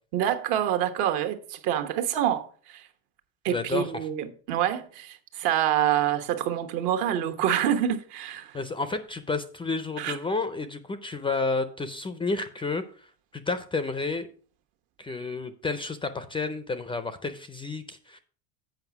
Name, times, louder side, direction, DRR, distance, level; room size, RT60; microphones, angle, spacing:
voice 1, 0.1-2.9 3.4-8.6 10.0-10.2, right 10 dB, 65° right, 1.3 m, -27 dB
voice 2, 3.5-3.9 8.5-14.3 15.0-18.2, left 3 dB, 15° left, 0.4 m, -31 dB
8.0 x 5.1 x 5.9 m
supercardioid pair, 125°, 41 cm